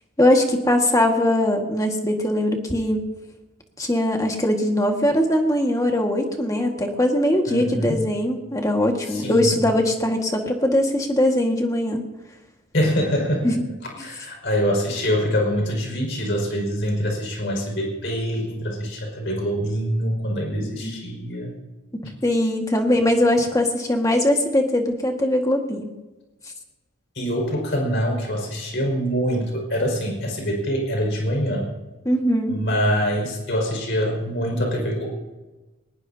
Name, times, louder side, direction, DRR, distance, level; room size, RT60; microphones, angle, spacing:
voice 1, 0.2-3.1 3.8-12.0 13.4-13.6 20.6-21.0 21.9-25.9 32.0-32.6, left 1 dB, 15° left, 3 dB, 1.7 m, -21 dB
voice 2, 7.5-8.0 9.0-9.6 12.7-13.6 14.0-21.5 22.0-22.2 27.1-31.7 32.5-35.2, equal, 50° left, 1 dB, 5.4 m, -24 dB
21.5 x 19.5 x 2.8 m, 1.1 s
head